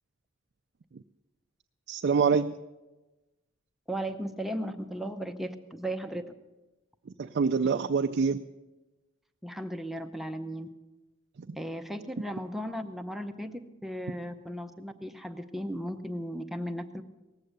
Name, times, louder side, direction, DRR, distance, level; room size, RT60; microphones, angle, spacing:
voice 1, 1.9-2.6 7.2-8.4 11.5-11.6, right 5 dB, 55° right, 5 dB, 0.4 m, -25 dB
voice 2, 3.9-6.3 9.4-10.7 11.6-17.0, equal, ahead, 5 dB, 0.6 m, -36 dB
18.5 x 7.6 x 8.0 m, 1.1 s
head